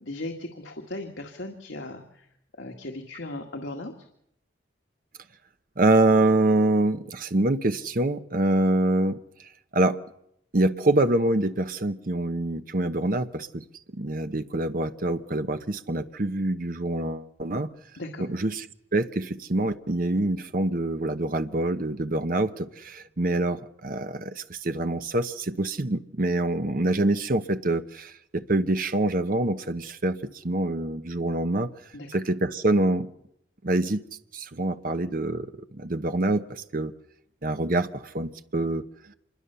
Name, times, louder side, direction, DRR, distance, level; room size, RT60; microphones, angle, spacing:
voice 1, 0.0-2.0 2.6-3.9 18.0-18.3 31.9-32.2, left 2 dB, 85° left, 2 dB, 2.0 m, -37 dB
voice 2, 5.8-10.0 10.5-13.6 13.9-17.7 18.2-18.7 18.9-31.7 32.1-33.1 33.6-34.0 34.3-36.9 37.4-38.8, right 2 dB, 45° right, 9 dB, 0.9 m, -25 dB
26.0 x 21.5 x 6.9 m, 0.77 s
head